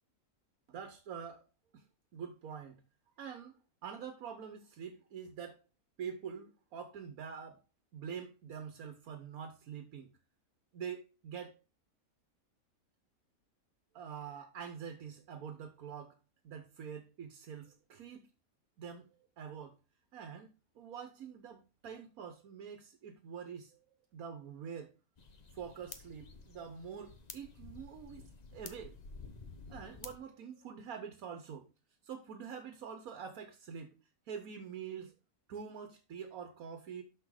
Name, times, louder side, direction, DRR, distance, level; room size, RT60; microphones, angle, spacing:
voice 1, 0.7-1.4 1.7-1.9 2.1-2.8 3.2-3.6 3.8-5.6 6.0-7.6 7.9-10.1 10.7-11.6 13.9-16.2 16.4-18.3 18.8-19.1 19.4-19.8 20.1-20.5 20.7-23.8 24.1-24.9 25.5-28.9 29.7-31.7 32.0-33.9 34.3-35.1 35.5-37.0, right 7 dB, 75° right, 1.4 m, -45 dB
sound 1, 25.2-30.2, left 4 dB, 35° left, 0.8 m, -51 dB
6.3 x 6.0 x 4.8 m
omnidirectional pair, 1.5 m